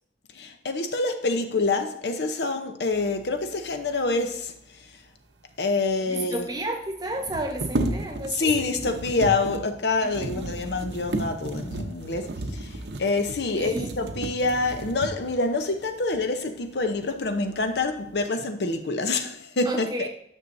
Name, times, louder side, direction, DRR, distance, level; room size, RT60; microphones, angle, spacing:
voice 1, 0.3-4.5 5.6-6.5 8.3-20.1, left 3 dB, 75° left, 0.7 m, -26 dB
sound 1, 5.6-5.7 5.9-6.0 7.1-15.4 16.1-16.2 16.7-17.3 17.7-18.2, right 2 dB, 80° right, 0.8 m, -33 dB
voice 2, 6.0-8.5 10.3-10.5 13.5-13.9 19.6-20.1, right 1 dB, 25° right, 0.9 m, -32 dB
9.8 x 6.2 x 2.6 m
head